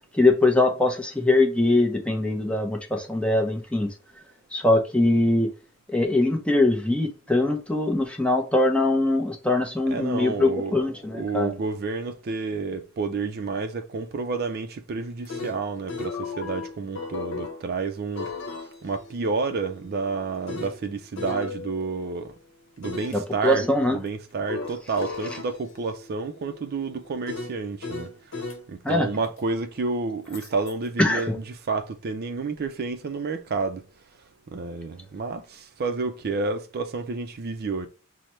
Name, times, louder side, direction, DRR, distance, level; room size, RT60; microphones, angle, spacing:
voice 1, 0.1-3.9 4.5-5.5 5.9-11.5 23.1-24.0 28.8-29.1 31.0-31.4, left 2 dB, 5° left, 0.6 m, -22 dB
voice 2, 9.9-10.8 11.2-18.3 18.8-22.3 22.8-23.6 23.9-28.1 28.7-33.8 34.5-37.9, right 4 dB, 50° right, 0.4 m, -30 dB
sound 1, 15.0-17.6 18.1-22.2 22.8-23.2 24.5-28.6 30.3-30.7, left 3 dB, 65° left, 0.8 m, -36 dB
5.7 x 2.1 x 3.1 m
head